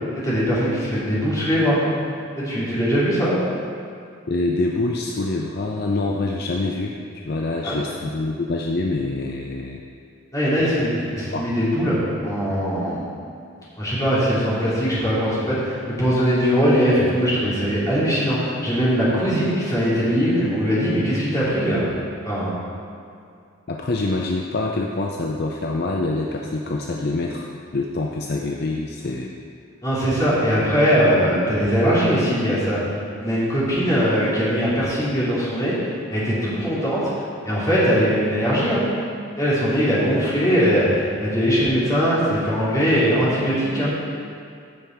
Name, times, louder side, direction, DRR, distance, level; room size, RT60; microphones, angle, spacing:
voice 1, 0.1-1.8 2.4-3.4 7.6-7.7 10.3-13.0 13.8-21.8 22.2-22.5 29.8-37.1 37.4-38.9 39.4-43.9, equal, 15° left, -9 dB, 2.6 m, -21 dB
voice 2, 4.3-7.0 7.2-9.8 10.6-10.7 11.3-11.5 23.7-27.5 27.7-29.4, left 2 dB, 50° left, 0 dB, 0.5 m, -25 dB
15.0 x 5.3 x 4.4 m, 2.4 s
head